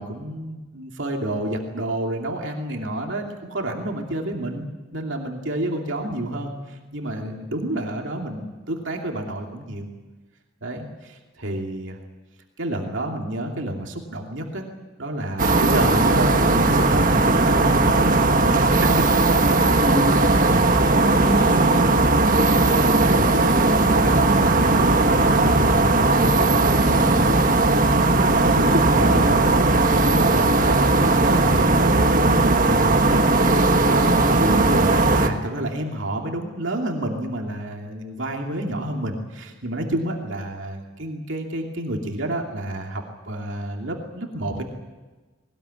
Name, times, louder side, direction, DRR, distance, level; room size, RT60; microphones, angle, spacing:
voice 1, 0.0-9.9 10.6-12.0 12.6-14.6 15.0-19.2 20.5-21.0 23.0-27.4 28.1-33.3 33.6-44.6, right 1 dB, 60° right, 1 dB, 2.7 m, -29 dB
sound 1, 15.4-35.3, right 2 dB, 40° right, 1.4 m, -18 dB
voice 2, 19.8-20.5 20.8-22.6 28.4-28.6, equal, 10° left, -1 dB, 7.6 m, -32 dB
20.5 x 19.5 x 9.8 m, 1.3 s
head